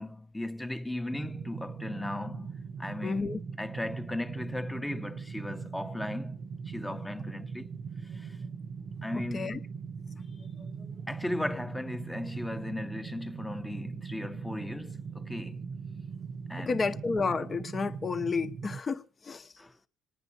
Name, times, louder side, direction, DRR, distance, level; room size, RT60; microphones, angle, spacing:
voice 1, 0.0-2.5 2.8-6.4 6.7-7.7 8.1-8.4 9.0-9.5 11.1-15.6 16.5-17.0 19.6-19.7, left 1 dB, 10° left, 0.9 m, -37 dB
sound 1, 1.1-18.8, right 5 dB, 60° right, 1.0 m, -40 dB
voice 2, 3.0-3.4 9.3-9.6 10.6-10.9 16.7-19.5, left 4 dB, 35° left, 0.9 m, -31 dB
26.5 x 9.6 x 2.6 m
supercardioid pair, 75°, 0 cm